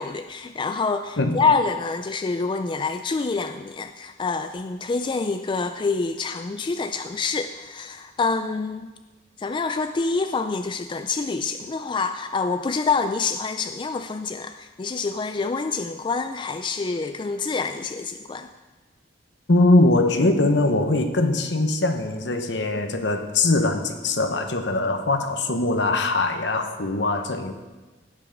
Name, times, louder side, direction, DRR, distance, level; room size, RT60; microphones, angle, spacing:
voice 1, 0.0-8.9 9.4-18.5, left 4 dB, 25° left, 8 dB, 0.3 m, -26 dB
voice 2, 19.5-27.5, left 2 dB, 65° left, 6 dB, 1.1 m, -21 dB
17.0 x 5.7 x 5.2 m, 1.3 s
head